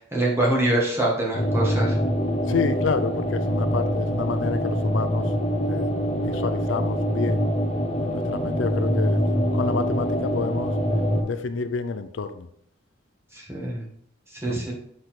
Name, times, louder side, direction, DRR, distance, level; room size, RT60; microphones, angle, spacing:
voice 1, 0.0-2.0 13.3-13.9 14.4-14.7, right 1 dB, 15° right, -4 dB, 1.9 m, -24 dB
sound 1, 1.3-11.2, equal, 35° left, 0.9 m, -24 dB
voice 2, 2.5-5.3 5.6-7.5 8.0-9.2 9.5-10.7 11.2-12.5 14.5-14.6, left 5 dB, 75° left, 10 dB, 0.5 m, -29 dB
6.4 x 4.2 x 4.5 m, 0.70 s
head